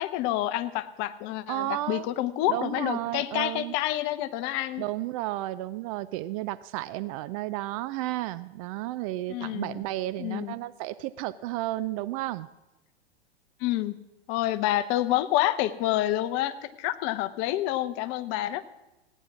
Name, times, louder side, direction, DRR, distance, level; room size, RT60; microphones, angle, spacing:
voice 1, 0.0-4.8 9.3-9.8 10.2-10.5 13.6-13.9 14.3-18.6, left 14 dB, 40° left, 13 dB, 0.9 m, -28 dB
voice 2, 1.5-2.1 2.5-3.7 4.8-12.5, right 16 dB, 35° right, 15 dB, 0.4 m, -32 dB
16.5 x 9.8 x 6.1 m, 1.0 s
figure-of-eight pair, 100°, 32 cm